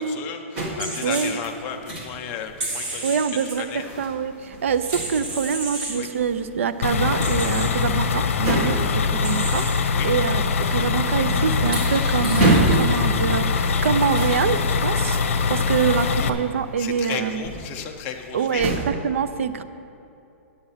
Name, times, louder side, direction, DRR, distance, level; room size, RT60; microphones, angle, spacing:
voice 1, 0.0-3.2 3.6-3.9 5.9-6.1 9.9-10.1 16.2-16.3 16.8-18.8, left 7 dB, 20° left, 5 dB, 0.6 m, -34 dB
sound 1, 0.6-1.0 1.4-2.2 2.4-2.9 3.4-10.3 10.6-18.8, right 1 dB, 15° right, 1.6 m, -28 dB
sound 2, 0.8-1.3 2.6-3.5 4.7-6.0 7.2-7.7 9.2-9.8 11.7-12.9, right 2 dB, 40° right, 2.3 m, -32 dB
voice 2, 1.0-1.4 3.0-10.4 10.7-15.2 15.5-17.5 18.3-19.6, right 6 dB, 70° right, 12 dB, 0.6 m, -25 dB
sound 3, 6.8-16.3, left 5 dB, 70° left, 0.8 m, -23 dB
9.0 x 8.7 x 5.6 m, 2.7 s
hypercardioid pair, 175°, 7 cm